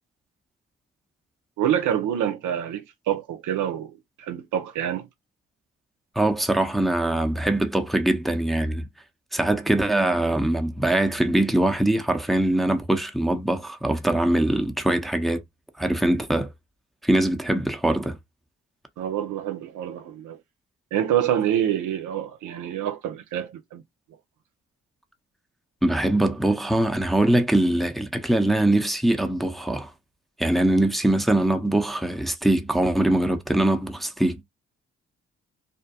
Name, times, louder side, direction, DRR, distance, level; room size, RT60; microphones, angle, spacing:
voice 1, 1.6-3.9 4.2-5.0 19.0-20.4 20.9-23.8, right 10 dB, 75° right, 0.6 m, -26 dB
voice 2, 6.2-8.9 9.3-15.4 15.8-16.5 17.0-18.2 25.8-29.9 30.4-34.4, right 1 dB, ahead, 0.6 m, -22 dB
2.6 x 2.2 x 2.7 m
hypercardioid pair, 40°, 31 cm